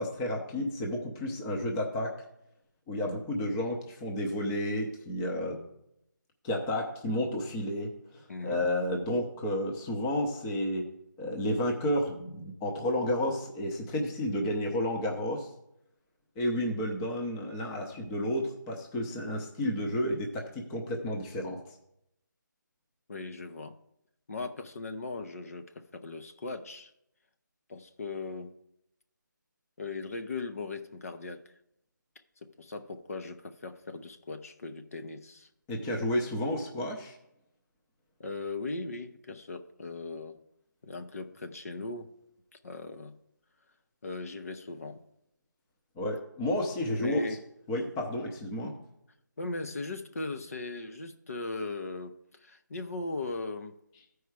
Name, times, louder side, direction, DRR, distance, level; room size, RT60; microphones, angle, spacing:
voice 1, 0.0-2.1 2.9-5.6 6.4-10.9 11.2-15.5 16.4-21.6 35.7-37.2 46.0-47.2 47.7-48.8, left 1 dB, 10° left, 0.7 m, -31 dB
voice 2, 8.3-8.6 23.1-23.8 24.3-26.9 27.7-28.5 29.8-31.4 32.4-35.5 38.2-40.4 40.8-42.1 42.6-43.2 44.0-45.0 46.9-47.4 49.4-53.8, left 3 dB, 45° left, 0.7 m, -38 dB
13.5 x 4.7 x 4.7 m
figure-of-eight pair, 160°, 11 cm